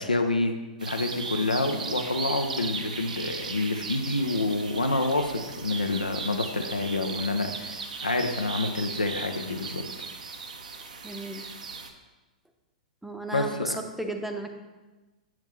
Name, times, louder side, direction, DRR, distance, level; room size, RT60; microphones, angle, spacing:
voice 1, 0.0-9.8 13.3-13.8, left 2 dB, 85° left, 5 dB, 0.7 m, -28 dB
sound 1, 0.8-11.9, right 4 dB, 70° right, 0.7 m, -37 dB
voice 2, 11.0-11.4 13.0-14.5, right 1 dB, 5° right, 5 dB, 0.7 m, -34 dB
7.6 x 7.4 x 3.1 m, 1.2 s
figure-of-eight pair, 105°, 4 cm